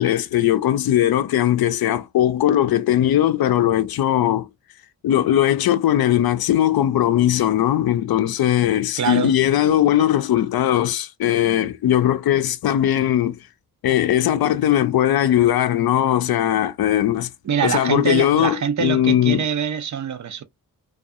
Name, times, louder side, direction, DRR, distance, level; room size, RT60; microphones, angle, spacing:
voice 1, 0.0-4.5 5.0-13.4 13.8-17.3 17.6-19.4, left 11 dB, 75° left, 0.5 m, -19 dB
voice 2, 9.0-9.3 17.4-20.4, right 7 dB, 50° right, 0.5 m, -24 dB
2.7 x 2.3 x 2.4 m
cardioid pair, 90°, 37 cm